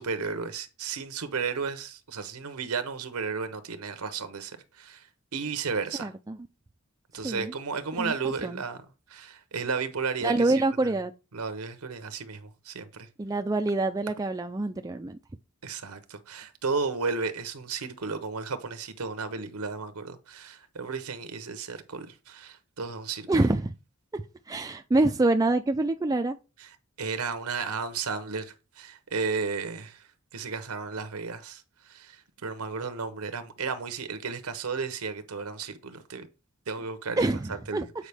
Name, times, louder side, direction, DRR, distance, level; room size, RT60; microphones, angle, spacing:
voice 1, 0.0-5.1 5.3-6.1 7.1-8.8 9.1-10.5 11.3-13.1 15.6-23.3 26.6-26.7 27.0-30.0 30.3-31.6 31.9-36.3 36.7-37.3 37.7-37.9, right 5 dB, 85° right, 0.8 m, -33 dB
voice 2, 5.9-6.4 7.2-7.5 8.0-8.1 8.4-8.6 10.2-11.1 13.2-15.2 23.3-23.7 24.1-26.4 37.2-37.9, right 2 dB, 15° right, 0.3 m, -26 dB
8.1 x 5.0 x 3.4 m
head